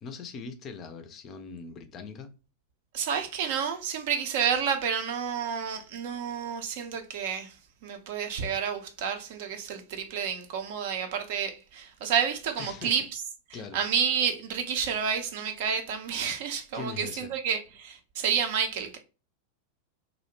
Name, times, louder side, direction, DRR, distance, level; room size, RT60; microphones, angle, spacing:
voice 1, 0.0-2.3 12.6-12.9 13.5-13.8 16.7-17.3, left 5 dB, 30° left, 0.4 m, -41 dB
voice 2, 2.9-7.6 7.8-13.2 13.5-19.0, right 7 dB, 50° right, 0.5 m, -30 dB
2.4 x 2.0 x 2.9 m
figure-of-eight pair, 90°, 0 cm